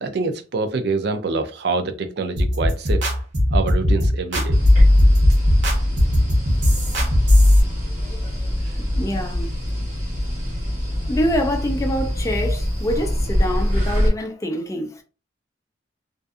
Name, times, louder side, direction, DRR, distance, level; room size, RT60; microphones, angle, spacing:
voice 1, 0.0-3.1 3.5-4.6 8.7-8.8, right 3 dB, 60° right, 0.4 m, -25 dB
sound 1, 2.4-7.6, left 1 dB, 85° right, 1.0 m, -16 dB
sound 2, 4.5-14.1, equal, 45° right, 1.2 m, -24 dB
voice 2, 6.6-7.0 8.0-9.5 11.1-15.0, equal, 15° left, 0.4 m, -26 dB
2.5 x 2.4 x 2.4 m
head